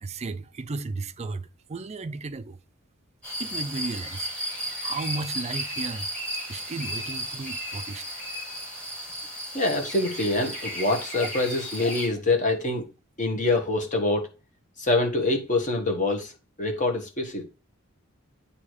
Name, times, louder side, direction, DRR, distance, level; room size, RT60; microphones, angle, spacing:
voice 1, 0.0-2.6 3.4-4.3 4.8-6.1 6.5-8.0 11.1-11.3, right 3 dB, 30° right, 0.4 m, -34 dB
sound 1, 3.2-12.1, equal, 5° left, 2.0 m, -34 dB
voice 2, 9.5-12.9 13.2-14.3 14.8-16.3 16.6-17.4, left 2 dB, 35° left, 1.4 m, -25 dB
8.5 x 2.8 x 4.8 m
head